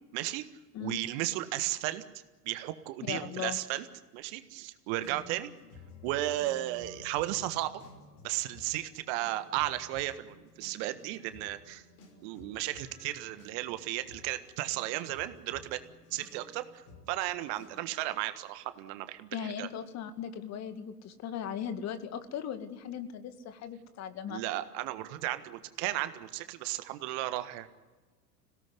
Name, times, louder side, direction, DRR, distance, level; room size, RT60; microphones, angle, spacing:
voice 1, 0.1-0.4 0.8-2.0 2.4-3.8 4.1-5.5 6.0-7.7 8.2-11.8 12.2-15.8 16.1-19.3 19.6-19.7 24.2-27.7, right 15 dB, 45° right, 12 dB, 1.6 m, -34 dB
voice 2, 3.0-3.6 19.3-24.4, left 9 dB, 35° left, 10 dB, 2.1 m, -38 dB
sound 1, 5.0-17.8, left 2 dB, 55° left, 5.8 m, -54 dB
27.0 x 17.5 x 9.7 m, 1.3 s
figure-of-eight pair, 80°, 46 cm